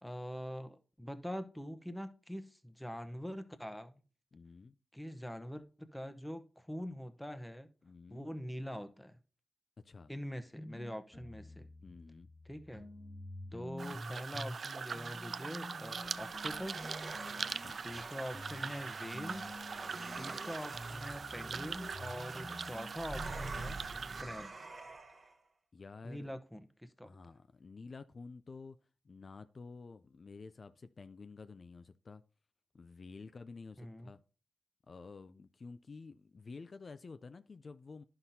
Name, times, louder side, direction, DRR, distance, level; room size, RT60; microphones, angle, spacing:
voice 1, 0.0-4.0 4.9-7.7 8.1-9.2 10.1-11.7 12.4-12.9 13.5-17.0 17.7-19.5 20.2-23.8 24.2-24.5 26.0-27.1 33.8-34.1, equal, 5° left, 0.9 m, -44 dB
voice 2, 4.3-4.8 7.8-8.3 9.8-10.1 11.8-12.3 17.6-18.1 25.7-26.3 27.0-28.8 29.0-32.2 32.7-34.2 34.9-38.0, left 4 dB, 55° left, 0.4 m, -51 dB
sound 1, 10.5-14.6 14.9-24.4, left 1 dB, 35° left, 3.2 m, -49 dB
sound 2, 13.8-24.2, right 5 dB, 65° right, 0.3 m, -42 dB
sound 3, 15.5-25.4, right 3 dB, 50° right, 1.1 m, -47 dB
11.0 x 5.8 x 2.7 m
cardioid pair, 45°, 0 cm